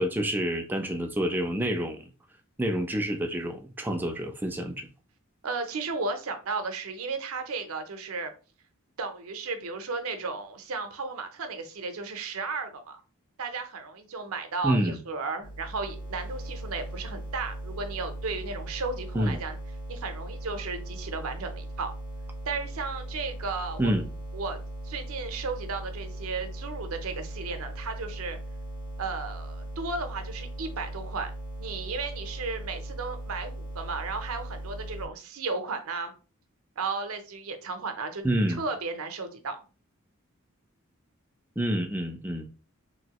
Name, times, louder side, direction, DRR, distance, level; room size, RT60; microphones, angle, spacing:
voice 1, 0.0-2.1 2.6-4.9 14.6-15.0 19.1-19.4 23.8-24.1 38.2-38.6 41.6-42.5, right 1 dB, 10° right, 0.4 m, -28 dB
voice 2, 5.4-8.3 9.0-13.0 13.4-19.6 19.9-21.9 22.5-23.9 24.3-28.4 29.0-31.3 31.6-36.1 36.8-38.2 38.5-39.6, right 4 dB, 75° right, 0.6 m, -34 dB
sound 1, 15.4-35.1, right 1 dB, 55° left, 1.0 m, -38 dB
3.0 x 2.7 x 2.9 m
head